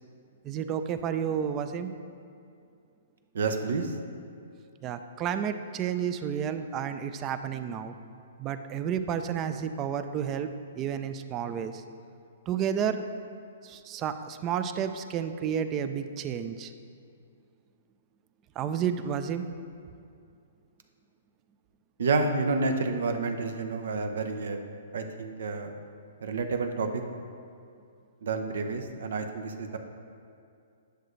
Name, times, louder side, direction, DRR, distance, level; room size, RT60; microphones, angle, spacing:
voice 1, 0.4-1.9 4.8-7.9 8.4-10.5 10.8-11.8 12.5-13.0 13.6-16.7 18.6-19.5, right 8 dB, 25° right, 9 dB, 0.4 m, -31 dB
voice 2, 3.3-4.0 22.0-24.6 24.9-25.7 26.2-27.0 28.2-29.8, right 3 dB, 75° right, 6 dB, 0.7 m, -29 dB
10.0 x 6.5 x 3.2 m, 2.5 s
hypercardioid pair, 150°, 0 cm